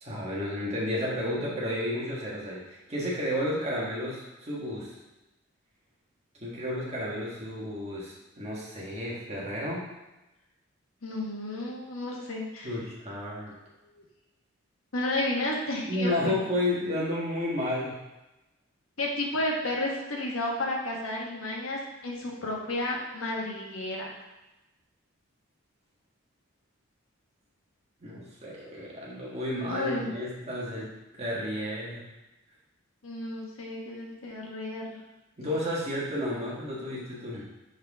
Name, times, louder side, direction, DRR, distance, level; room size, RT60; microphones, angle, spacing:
voice 1, 0.0-4.9 6.4-9.8 12.6-13.5 15.9-17.9 28.0-30.9 31.2-32.0 35.4-37.5, left 1 dB, 30° right, -5 dB, 1.6 m, -32 dB
voice 2, 11.0-12.7 13.8-14.0 14.9-16.4 19.0-24.1 29.7-30.1 33.0-35.0, left 1 dB, 90° left, -2 dB, 1.4 m, -32 dB
6.5 x 4.8 x 3.6 m, 1.0 s
head